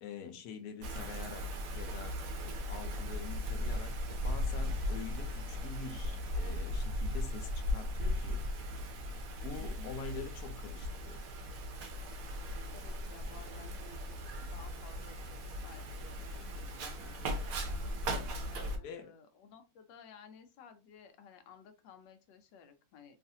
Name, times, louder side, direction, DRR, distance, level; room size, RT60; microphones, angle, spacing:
voice 1, 0.0-1.5 1.7-2.2 2.7-8.4 9.4-11.2 17.2-17.5 18.8-19.1, left 5 dB, 70° left, 1.0 m, -45 dB
Wind, 0.8-18.8, left 1 dB, 65° right, 0.9 m, -37 dB
voice 2, 9.6-9.9 12.7-17.3 17.7-17.8 18.5-23.2, left 6 dB, 90° left, 1.3 m, -56 dB
3.1 x 2.4 x 2.6 m
omnidirectional pair, 1.9 m